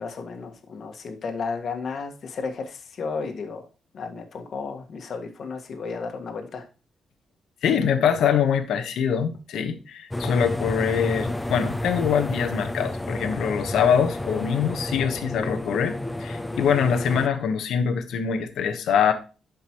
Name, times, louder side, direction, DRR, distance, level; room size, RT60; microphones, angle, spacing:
voice 1, 0.0-3.7 3.9-6.7, left 4 dB, 60° left, 1.6 m, -33 dB
voice 2, 7.6-19.1, left 7 dB, 90° left, 1.2 m, -24 dB
sound 1, 10.1-17.3, left 1 dB, 10° left, 0.5 m, -30 dB
12.0 x 5.2 x 3.0 m
cardioid pair, 105°, 0 cm